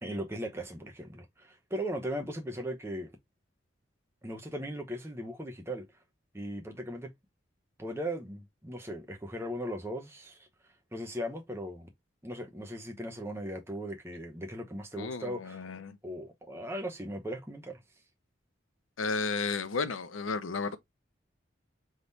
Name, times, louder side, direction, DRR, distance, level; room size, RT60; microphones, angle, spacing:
voice 1, 0.0-3.1 4.2-5.9 6.3-7.1 7.8-10.5 10.9-11.9 12.2-15.6 16.0-17.8, equal, 15° right, 0.9 m, -38 dB
voice 2, 15.0-16.0 19.0-20.8, left 4 dB, 90° left, 0.7 m, -33 dB
3.7 x 3.0 x 3.9 m
head